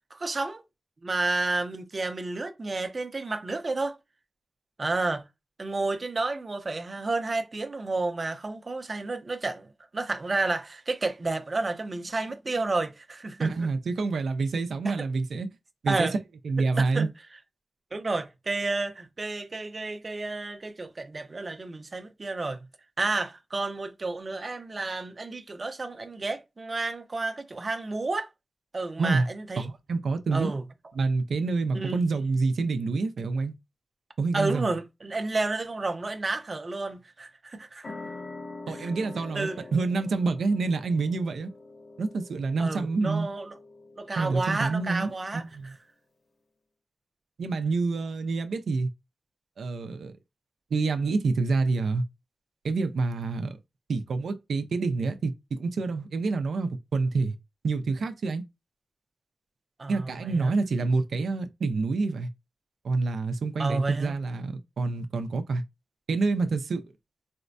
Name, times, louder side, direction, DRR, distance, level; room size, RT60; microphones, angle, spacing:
voice 1, 0.1-0.6 1.0-4.0 4.8-5.2 5.6-13.5 14.8-14.9 15.9-16.1 16.8-17.1 17.9-22.6 23.0-28.3 28.7-29.7 30.3-30.6 31.7-32.0 34.3-37.9 38.7-38.9 39.3-39.6 42.6-43.5 44.0-45.7 59.8-60.5 63.6-64.1, right 3 dB, 40° right, 0.5 m, -31 dB
voice 2, 13.4-15.5 15.8-16.1 16.4-17.1 29.0-29.3 29.6-30.5 30.9-33.5 34.2-34.7 38.7-41.5 42.0-43.3 44.2-45.7 47.4-48.9 49.6-50.1 50.7-52.0 52.6-53.6 53.9-57.4 57.6-58.4 59.9-62.3 62.8-65.6 66.1-66.8, right 3 dB, 90° right, 0.5 m, -27 dB
sound 1, 37.8-45.0, left 2 dB, 60° left, 0.8 m, -45 dB
4.2 x 2.1 x 2.5 m
wide cardioid pair, 115°, 0 cm